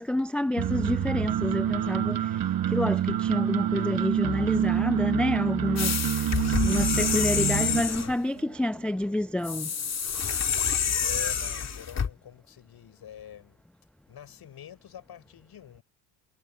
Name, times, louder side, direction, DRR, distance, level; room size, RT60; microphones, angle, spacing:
voice 1, 0.0-9.7, left 1 dB, ahead, 0.5 m, -29 dB
sound 1, 0.6-7.8, right 10 dB, 45° right, 1.8 m, -27 dB
sound 2, 1.3-10.3, right 17 dB, 85° right, 2.2 m, -49 dB
sound 3, 5.8-8.2 9.4-12.1, left 7 dB, 35° left, 2.2 m, -28 dB
voice 2, 11.0-13.6 14.1-15.8, left 10 dB, 50° left, 6.7 m, -45 dB
hypercardioid pair, 60°, 47 cm